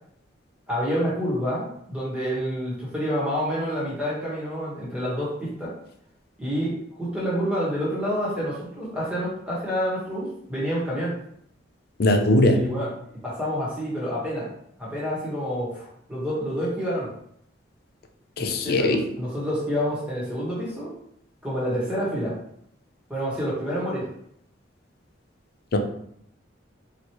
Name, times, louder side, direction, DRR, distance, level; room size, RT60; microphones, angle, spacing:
voice 1, 0.7-5.7 6.4-11.1 12.5-14.5 14.8-17.1 18.4-20.9 21.4-22.3 23.1-24.0, equal, 5° right, -7 dB, 1.4 m, -28 dB
voice 2, 12.0-12.6 18.4-19.0 25.7-25.8, left 1 dB, 55° left, 5 dB, 0.5 m, -19 dB
4.3 x 3.1 x 3.1 m, 0.71 s
head